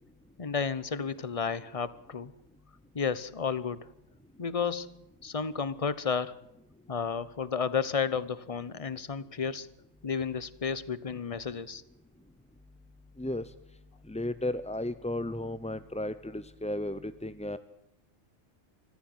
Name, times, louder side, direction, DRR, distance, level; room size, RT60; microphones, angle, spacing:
voice 1, 0.4-2.3 2.9-3.9 4.4-6.4 6.9-9.7 10.0-11.8, left 6 dB, 30° left, 17 dB, 0.8 m, -32 dB
voice 2, 13.2-13.5 14.1-17.6, left 1 dB, 10° left, 13 dB, 0.4 m, -34 dB
24.0 x 14.5 x 8.0 m, 0.84 s
omnidirectional pair, 1.4 m